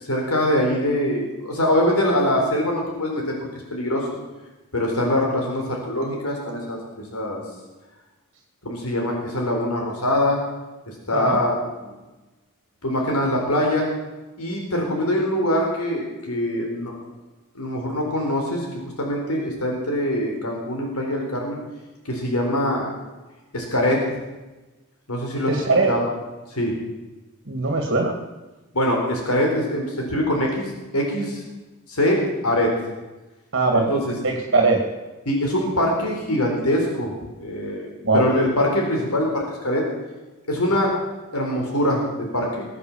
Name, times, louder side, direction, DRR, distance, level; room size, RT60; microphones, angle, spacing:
voice 1, 0.0-4.1 4.7-7.4 8.6-10.4 10.9-11.5 11.8-11.9 12.8-13.9 14.4-16.9 17.5-21.6 22.1-22.9 23.5-24.0 25.1-25.5 25.9-26.1 26.5-26.7 28.7-31.4 31.9-32.7 33.7-34.0 35.3-37.1 37.4-37.9 38.1-39.8 40.5-40.9 41.3-42.7, left 1 dB, 80° left, 0 dB, 4.0 m, -23 dB
voice 2, 25.5-25.9 27.5-28.2 33.5-33.9 34.2-34.8 38.0-38.3, right 3 dB, 55° right, 2 dB, 2.1 m, -20 dB
21.5 x 8.3 x 7.2 m, 1.1 s
head